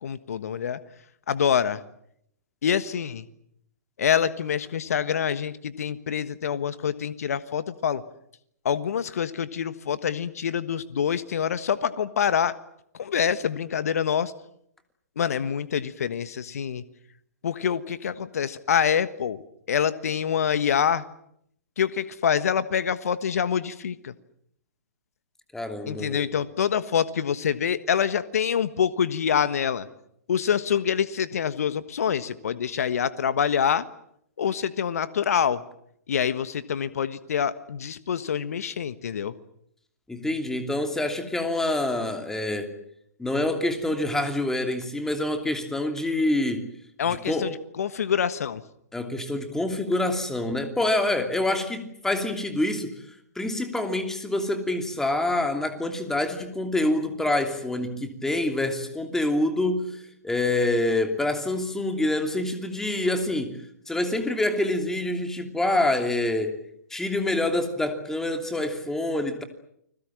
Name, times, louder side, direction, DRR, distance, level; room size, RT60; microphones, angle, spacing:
voice 1, 0.0-0.8 1.3-1.8 2.6-3.3 4.0-8.0 8.6-12.5 13.0-14.3 15.2-16.8 17.4-19.4 19.7-21.0 21.8-24.1 25.9-29.9 30.3-33.8 34.4-35.6 36.1-39.3 47.0-48.6, left 8 dB, 65° left, 1.4 m, -26 dB
voice 2, 25.5-26.3 40.1-42.8 43.2-46.7 47.1-47.5 48.9-53.0 53.3-66.6 66.9-69.4, left 1 dB, 5° left, 2.9 m, -26 dB
30.0 x 21.0 x 7.5 m
figure-of-eight pair, 125°, 9 cm